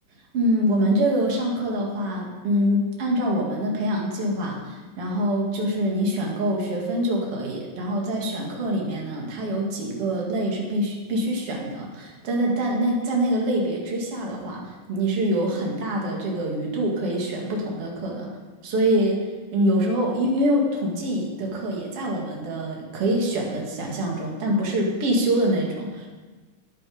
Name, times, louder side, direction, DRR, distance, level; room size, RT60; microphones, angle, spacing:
voice 1, 0.3-14.6 14.9-18.3 18.6-19.3 19.5-26.1, right 1 dB, 45° right, -1 dB, 3.0 m, -25 dB
12.5 x 9.9 x 5.1 m, 1.3 s
omnidirectional pair, 4.0 m